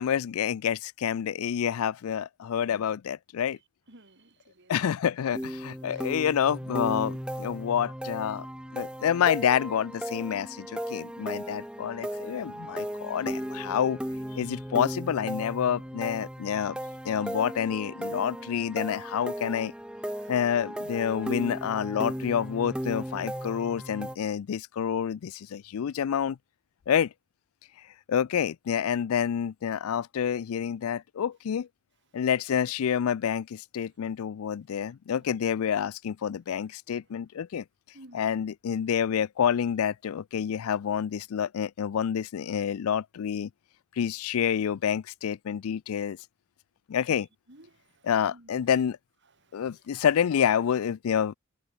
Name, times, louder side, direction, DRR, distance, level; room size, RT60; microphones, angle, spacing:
voice 1, 0.0-3.6 4.7-8.5 8.7-14.0 14.3-16.8 17.0-19.7 20.3-26.4 26.9-27.1 28.1-31.7 32.1-37.6 38.1-43.5 44.0-46.2 46.9-47.3 48.0-49.0 49.5-51.3, left 8 dB, 75° left, 0.4 m, -28 dB
voice 2, 3.9-4.7 5.9-6.1 12.8-13.4 18.4-18.8 20.2-20.3 24.3-24.4 35.1-35.4 37.9-38.4 47.1-47.2 47.5-48.5 49.4-49.6, right 1 dB, 55° right, 3.2 m, -55 dB
sound 1, 5.3-24.2, equal, 5° right, 1.0 m, -36 dB
head